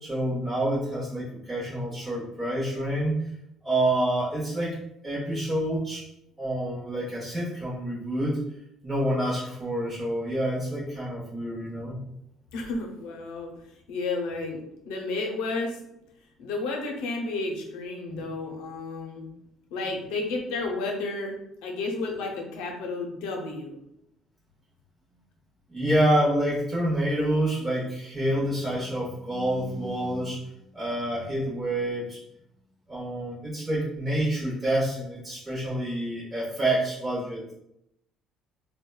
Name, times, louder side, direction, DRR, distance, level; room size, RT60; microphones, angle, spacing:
voice 1, 0.0-3.2 3.6-4.8 5.0-6.0 6.4-8.4 8.8-12.0 18.1-18.2 25.7-30.4 30.7-32.2 32.9-37.4, right 1 dB, 25° right, -7 dB, 0.9 m, -27 dB
voice 2, 12.5-15.8 16.4-19.3 19.7-23.8, left 3 dB, 80° left, 2 dB, 0.5 m, -32 dB
2.9 x 2.1 x 2.2 m, 0.80 s
supercardioid pair, 70°, 0 cm